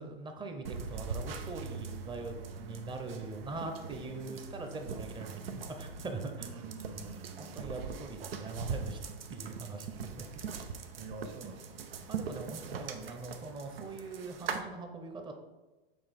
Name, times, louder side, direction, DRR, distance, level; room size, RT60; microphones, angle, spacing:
voice 1, 0.0-6.5 7.4-9.9 12.1-15.3, right 3 dB, 15° right, 5 dB, 0.8 m, -42 dB
sound 1, 0.6-14.6, right 5 dB, 80° right, 0.8 m, -41 dB
voice 2, 6.4-7.7 11.0-12.7, right 3 dB, 45° right, 4 dB, 1.4 m, -48 dB
7.0 x 3.4 x 5.3 m, 1.1 s
hypercardioid pair, 115°, 29 cm